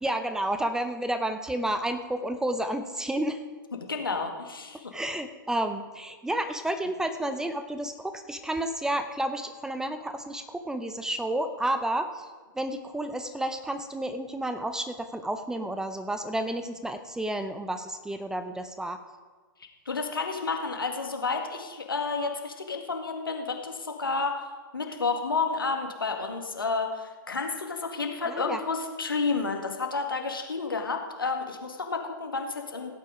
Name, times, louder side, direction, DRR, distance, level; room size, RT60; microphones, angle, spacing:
voice 1, 0.0-3.4 4.9-12.3 12.5-19.0 28.3-28.6, right 1 dB, 5° right, 8 dB, 0.6 m, -31 dB
voice 2, 3.9-4.9 19.9-24.4 24.7-32.9, left 4 dB, 80° left, 3 dB, 2.0 m, -30 dB
16.5 x 8.5 x 5.0 m, 1.4 s
figure-of-eight pair, 110°, 12 cm